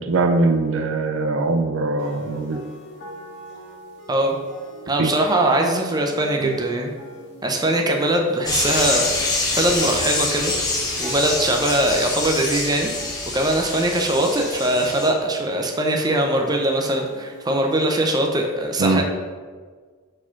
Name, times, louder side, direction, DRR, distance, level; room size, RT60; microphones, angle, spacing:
voice 1, 0.0-2.6 5.0-5.1 6.4-6.5 18.8-19.0, right 3 dB, 70° right, 6 dB, 0.5 m, -21 dB
sound 1, 2.0-18.0, equal, 55° left, 1.4 m, -42 dB
voice 2, 4.9-6.9 7.4-9.0 9.6-10.5 11.0-19.0, right 1 dB, 20° right, 2 dB, 0.6 m, -21 dB
sound 2, 8.4-15.1, left 2 dB, 20° left, 1.0 m, -25 dB
4.7 x 4.4 x 5.8 m, 1.5 s
head